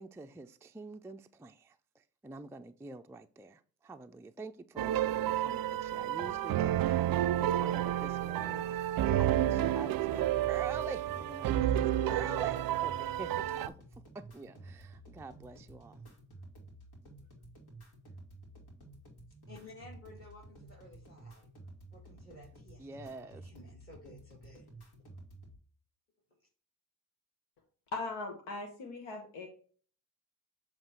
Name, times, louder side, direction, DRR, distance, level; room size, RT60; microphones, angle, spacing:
voice 1, 0.0-16.0 22.8-23.5, right 3 dB, 5° right, 0.4 m, -46 dB
sound 1, 4.8-13.7, right 12 dB, 55° right, 0.5 m, -30 dB
sound 2, 9.6-25.6, right 2 dB, 60° left, 2.3 m, -53 dB
voice 2, 19.5-21.5 21.9-24.7, left 2 dB, 30° left, 3.1 m, -54 dB
voice 3, 27.9-29.5, left 2 dB, 80° left, 1.2 m, -39 dB
7.3 x 3.0 x 4.4 m
hypercardioid pair, 45°, 42 cm